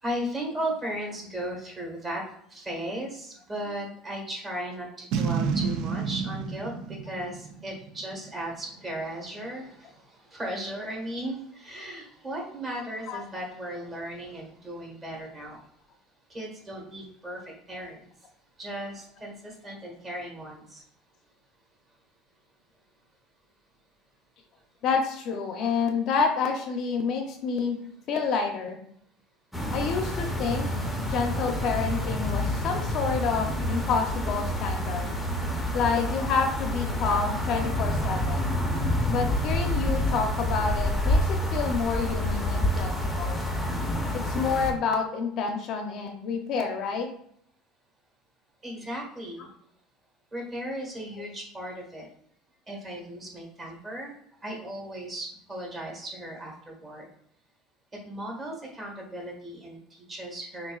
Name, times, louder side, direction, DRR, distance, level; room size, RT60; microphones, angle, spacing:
voice 1, 0.0-2.2 2.5-15.6 16.3-18.3 18.6-20.8 48.6-49.5 50.3-52.1 52.7-54.1 54.4-57.1 58.0-60.7, right 1 dB, 20° right, -1 dB, 1.4 m, -36 dB
Boom, 5.1-8.4, right 6 dB, 60° right, 0.4 m, -30 dB
voice 2, 24.8-27.8 28.1-28.8 29.7-30.7 31.0-35.1 35.7-38.5 39.1-43.4 44.1-47.1, left 5 dB, 50° left, 4 dB, 0.6 m, -28 dB
sound 1, 29.5-44.7, left 1 dB, 5° left, 0.7 m, -28 dB
6.2 x 2.6 x 2.4 m, 0.68 s
cardioid pair, 140°, 0 cm